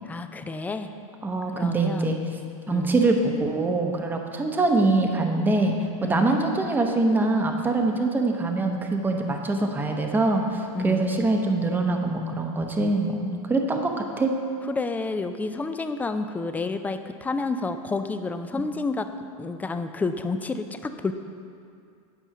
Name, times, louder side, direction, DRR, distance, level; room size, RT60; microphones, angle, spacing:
voice 1, 0.0-0.9 1.5-2.2 2.7-2.9 6.0-6.3 10.7-11.1 14.7-19.1 19.4-21.1, left 3 dB, 10° left, 9 dB, 0.4 m, -30 dB
voice 2, 1.2-2.2 2.7-5.7 6.0-14.3, right 2 dB, 10° right, 3 dB, 0.8 m, -24 dB
10.0 x 5.5 x 5.9 m, 2.3 s
supercardioid pair, 125°, 18 cm